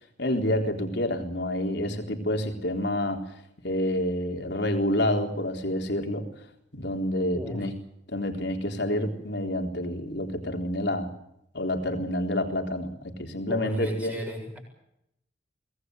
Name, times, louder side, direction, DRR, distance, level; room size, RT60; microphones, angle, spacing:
voice 1, 0.2-3.2 3.6-6.2 6.7-7.7 8.1-11.1 11.5-14.1, left 1 dB, 60° left, 4 dB, 3.9 m, -28 dB
voice 2, 7.3-7.7 13.5-14.6, equal, 5° right, 1 dB, 7.5 m, -34 dB
24.5 x 19.5 x 7.9 m, 0.79 s
head